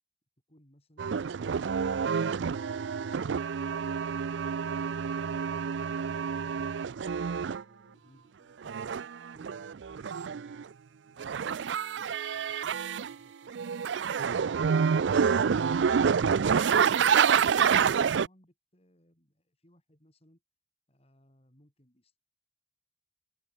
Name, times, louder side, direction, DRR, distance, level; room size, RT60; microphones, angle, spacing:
voice 1, 0.5-1.2 1.7-3.6 7.5-11.5 12.0-14.3 16.2-20.4 20.9-22.2, equal, 35° left, 7.2 m, -64 dB
sound 1, 1.0-7.6 8.6-10.6 11.2-13.2 13.5-18.3, right 6 dB, 75° right, 0.4 m, -28 dB
open air
head